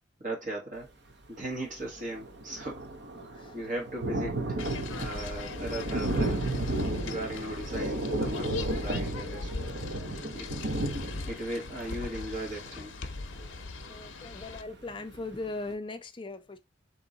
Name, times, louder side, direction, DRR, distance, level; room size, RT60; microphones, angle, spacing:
voice 1, 0.2-0.9 1.3-4.4 4.9-6.4 6.8-9.5 10.3-10.5 11.3-12.9, right 1 dB, 40° right, 1.5 m, -37 dB
Thunder, 1.5-1.6 1.8-14.5 15.0-15.1 15.4-15.5, right 1 dB, 65° right, 0.8 m, -33 dB
voice 2, 3.3-3.7 13.8-16.6, left 2 dB, 25° left, 0.5 m, -39 dB
sound 1, 4.6-14.6, left 4 dB, 90° left, 0.6 m, -40 dB
3.7 x 3.0 x 3.9 m
head